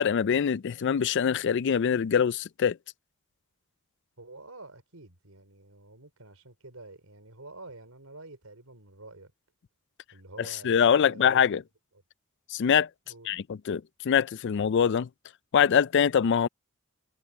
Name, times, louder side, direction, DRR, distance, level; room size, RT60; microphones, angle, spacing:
voice 1, 0.0-2.8 10.4-11.6 12.5-12.9 13.3-15.1 15.5-16.5, left 7 dB, 55° left, 0.4 m, -24 dB
voice 2, 4.2-9.3 10.1-11.6 13.1-13.3, right 2 dB, 85° right, 5.0 m, -48 dB
head